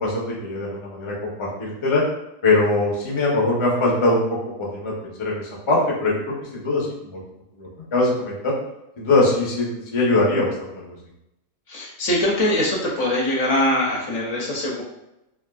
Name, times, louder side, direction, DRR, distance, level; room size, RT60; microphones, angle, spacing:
voice 1, 0.0-2.0 2.4-4.2 4.6-4.9 5.2-6.1 6.5-7.2 7.6-8.5 9.0-10.5 10.8-11.0, left 2 dB, 45° left, -4 dB, 0.4 m, -22 dB
voice 2, 11.7-14.8, left 1 dB, 60° left, -3 dB, 0.9 m, -22 dB
3.4 x 2.6 x 2.3 m, 0.88 s
omnidirectional pair, 1.7 m